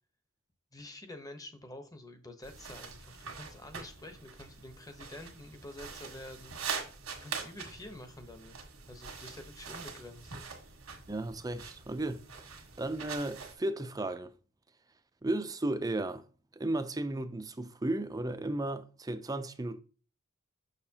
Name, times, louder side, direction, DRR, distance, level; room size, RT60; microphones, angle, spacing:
voice 1, 0.7-6.8 7.2-8.6 8.9-10.4, left 1 dB, 15° left, 0.9 m, -48 dB
sound 1, 2.4-13.5, right 5 dB, 80° right, 1.6 m, -44 dB
voice 2, 11.1-14.3 15.2-16.3 16.5-19.8, right 2 dB, 20° right, 0.5 m, -34 dB
6.7 x 6.2 x 2.8 m
head